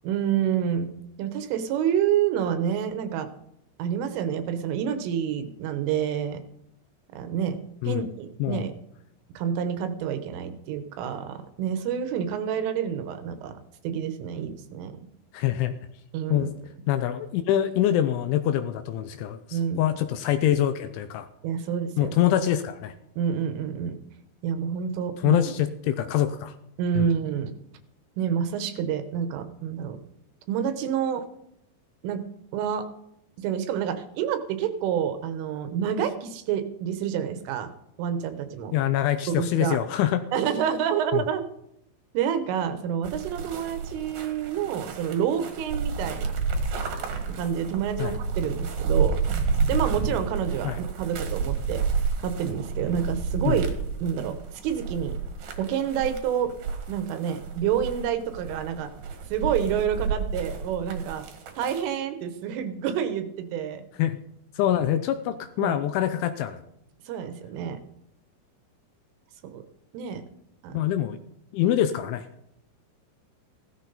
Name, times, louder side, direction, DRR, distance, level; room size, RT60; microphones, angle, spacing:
voice 1, 0.0-0.9 1.2-3.3 3.8-6.4 7.1-7.6 7.9-8.7 9.4-13.6 13.8-15.0 16.1-16.5 19.5-19.8 21.4-22.2 23.2-24.0 24.4-25.6 26.8-27.5 28.2-30.0 30.5-31.2 32.0-32.2 32.5-32.9 33.4-37.7 38.0-38.8 39.3-39.8 40.3-41.4 42.2-46.4 47.3-49.2 49.7-51.8 52.2-53.6 54.0-54.4 54.6-55.1 55.6-56.5 56.9-58.9 59.3-61.3 61.6-63.9 65.6-65.8 67.1-67.8 69.5-69.6 69.9-70.2 70.6-70.7, right 8 dB, 75° right, 9 dB, 3.5 m, -28 dB
voice 2, 15.3-15.8 16.3-16.5 16.9-21.3 22.0-22.9 25.2-26.5 27.0-27.1 38.7-40.2 41.1-41.2 48.0-48.2 50.6-50.8 53.5-53.6 64.0-64.2 64.6-66.6 70.7-71.2 71.5-72.2, left 11 dB, 80° left, 9 dB, 2.9 m, -25 dB
sound 1, 43.0-61.8, right 5 dB, 60° right, 2.8 m, -30 dB
16.0 x 13.0 x 4.1 m, 0.77 s
omnidirectional pair, 6.0 m